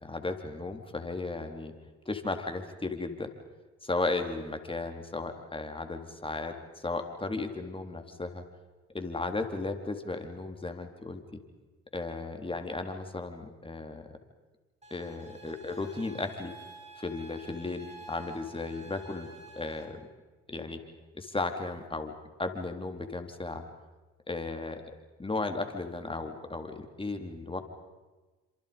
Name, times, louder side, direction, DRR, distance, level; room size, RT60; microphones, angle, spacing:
voice 1, 0.0-1.7 2.1-3.3 3.8-8.4 8.9-11.4 11.9-14.1 14.9-16.5 17.0-19.3 19.6-20.0 20.5-20.8 21.1-22.1 22.4-23.7 24.3-24.7 25.2-27.6, left 3 dB, 15° left, 6 dB, 3.9 m, -35 dB
sound 1, 14.8-19.9, right 2 dB, 20° right, 7.7 m, -50 dB
29.0 x 27.0 x 5.4 m, 1.2 s
supercardioid pair, 65°, 30 cm